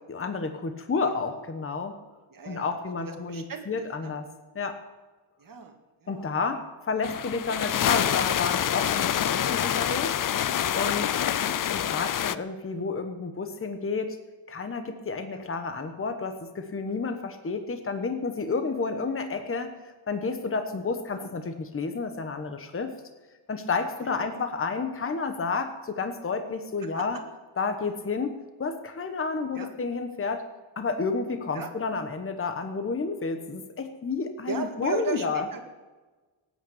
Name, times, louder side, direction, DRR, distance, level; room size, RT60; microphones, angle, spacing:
voice 1, 0.1-1.9 2.4-4.2 4.5-4.8 6.1-10.1 10.7-11.2 11.7-14.2 14.5-19.7 20.1-22.9 23.5-27.2 27.6-30.4 30.8-35.5, left 4 dB, 25° left, 7 dB, 1.2 m, -30 dB
voice 2, 2.3-4.2 5.4-5.7 6.0-6.3 11.3-11.6 15.3-15.4 21.2-21.3 24.0-24.4 26.9-27.0 29.5-29.7 31.5-31.7 34.5-35.7, right 6 dB, 40° right, 4 dB, 2.0 m, -37 dB
sound 1, 7.0-12.4, left 10 dB, 45° left, 0.4 m, -26 dB
17.5 x 9.4 x 7.9 m, 1.2 s
wide cardioid pair, 170°, 50 cm